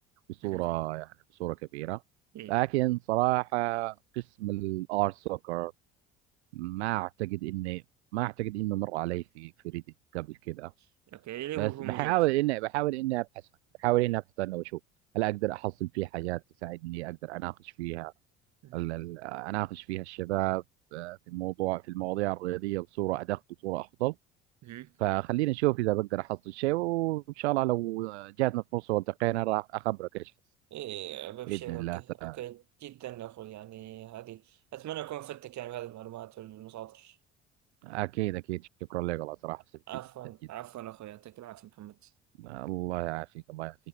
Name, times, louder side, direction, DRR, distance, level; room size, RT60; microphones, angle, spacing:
voice 1, 0.3-1.1 1.4-2.0 2.5-5.7 6.5-7.8 8.1-9.8 10.1-10.7 11.6-13.3 13.8-14.8 15.1-18.1 18.7-20.6 20.9-24.1 25.0-30.3 31.5-32.4 37.8-38.6 38.9-39.6 42.4-43.7, right 20 dB, 70° right, 1.0 m, -31 dB
voice 2, 11.1-12.2 18.6-18.9 24.6-24.9 30.7-37.2 39.9-42.1, right 14 dB, 50° right, 7.3 m, -42 dB
figure-of-eight pair, 55°, 35 cm